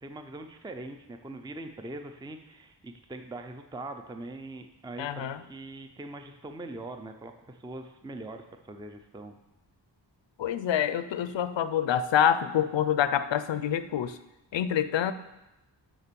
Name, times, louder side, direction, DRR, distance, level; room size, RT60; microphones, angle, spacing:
voice 1, 0.0-9.4, right 2 dB, 10° right, 6 dB, 0.5 m, -42 dB
voice 2, 5.0-5.4 10.4-14.2 14.5-15.1, left 9 dB, 80° left, 13 dB, 0.6 m, -26 dB
7.0 x 6.1 x 6.8 m, 0.98 s
wide cardioid pair, 100°, 44 cm